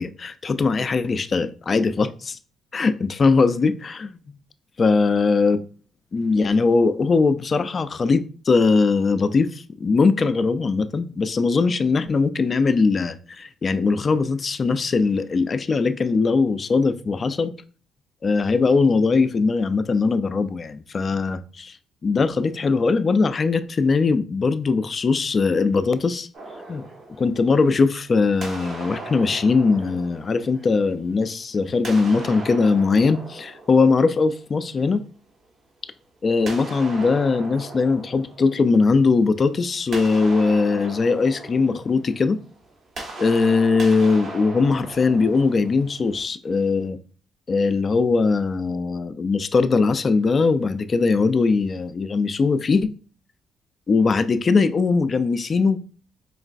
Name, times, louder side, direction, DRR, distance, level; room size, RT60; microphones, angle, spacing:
voice 1, 0.0-2.4 2.7-4.2 4.8-5.6 6.1-17.5 18.2-21.7 22.0-26.3 26.7-26.9 27.2-35.0 36.2-42.4 43.2-47.0 47.5-52.9 53.9-55.8, left 4 dB, 40° left, 0.3 m, -20 dB
sound 1, 26.3-28.0 28.4-31.2 31.7-34.6 36.5-39.2 39.6-46.2, right 2 dB, 60° right, 1.1 m, -38 dB
4.5 x 3.1 x 2.5 m
cardioid pair, 90°, 0 cm